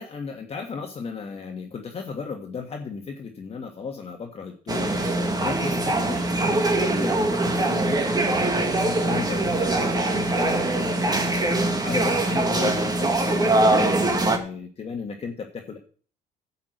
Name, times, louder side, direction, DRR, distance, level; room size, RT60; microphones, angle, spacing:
voice 1, 0.0-15.8, left 5 dB, 35° left, 2 dB, 1.7 m, -35 dB
sound 1, 4.7-14.4, right 2 dB, 20° right, 1.9 m, -23 dB
10.5 x 5.8 x 8.0 m, 0.42 s
cardioid pair, 110°, 17 cm